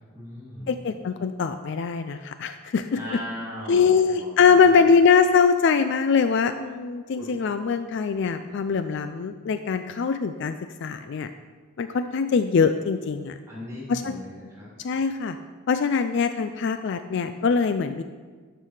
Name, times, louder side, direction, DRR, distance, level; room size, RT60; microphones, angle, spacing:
voice 1, 0.1-0.8 2.9-4.9 7.0-7.4 13.5-14.7, left 1 dB, 15° right, -7 dB, 3.2 m, -38 dB
voice 2, 0.7-3.2 3.7-10.6 10.8-11.3 11.8-13.4 13.9-14.2 14.8-15.4 15.7-18.0, left 5 dB, 60° left, 10 dB, 0.4 m, -22 dB
12.0 x 6.1 x 4.9 m, 1.5 s
head